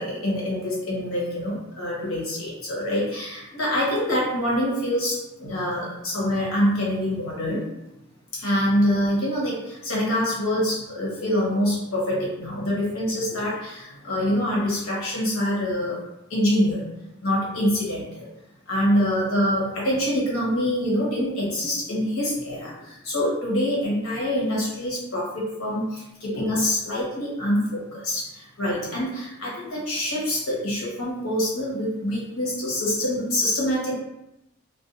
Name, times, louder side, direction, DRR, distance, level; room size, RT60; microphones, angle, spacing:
voice 1, 0.0-7.6 8.4-16.0 16.3-16.8 17.2-18.2 18.7-33.9, equal, 80° left, -5 dB, 1.0 m, -25 dB
2.5 x 2.2 x 2.5 m, 0.90 s
head